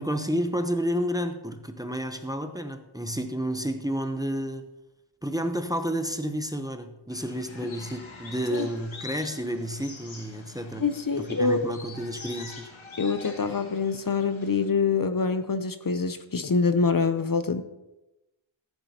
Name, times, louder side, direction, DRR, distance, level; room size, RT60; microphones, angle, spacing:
voice 1, 0.0-4.7 5.2-10.9 11.2-12.7, equal, 10° right, 7 dB, 0.7 m, -30 dB
sound 1, 7.1-14.7, left 4 dB, 90° left, 1.5 m, -45 dB
voice 2, 10.8-11.7 13.0-17.6, left 4 dB, 45° left, 10 dB, 0.7 m, -25 dB
14.0 x 9.1 x 2.8 m, 0.97 s
wide cardioid pair, 80°, 46 cm